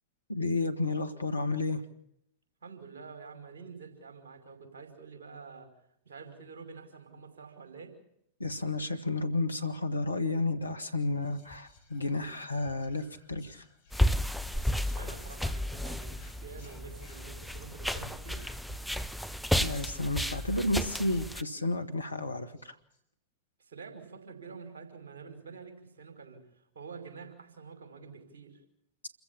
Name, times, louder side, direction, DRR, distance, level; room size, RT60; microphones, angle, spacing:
voice 1, 0.3-1.8 8.4-13.6 19.6-22.8, left 2 dB, 85° left, 9 dB, 1.7 m, -31 dB
voice 2, 2.6-5.7 6.1-8.0 14.9-18.5 23.6-28.6, right 5 dB, 65° right, 6 dB, 5.4 m, -48 dB
Whispering, 10.9-21.9 22.3-22.4 22.6-23.0, left 4 dB, 60° left, 4.5 m, -56 dB
sound 1, 13.9-21.4, equal, ahead, 0.8 m, -32 dB
27.5 x 15.0 x 7.3 m, 0.77 s
figure-of-eight pair, 95°, 0 cm